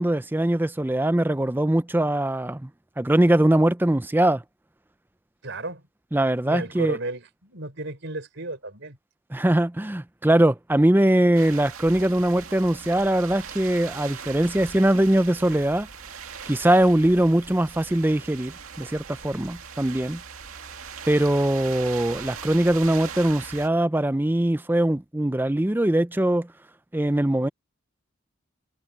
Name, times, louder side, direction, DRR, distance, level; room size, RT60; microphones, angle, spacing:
voice 1, 0.0-2.7 3.0-4.4 6.1-7.0 9.3-15.9 16.5-20.2 21.1-26.5 26.9-27.5, right 1 dB, 10° right, 0.4 m, -21 dB
voice 2, 5.4-5.8 6.4-9.0, right 2 dB, 55° right, 5.3 m, -33 dB
sound 1, 11.3-23.7, right 6 dB, 75° right, 2.2 m, -40 dB
head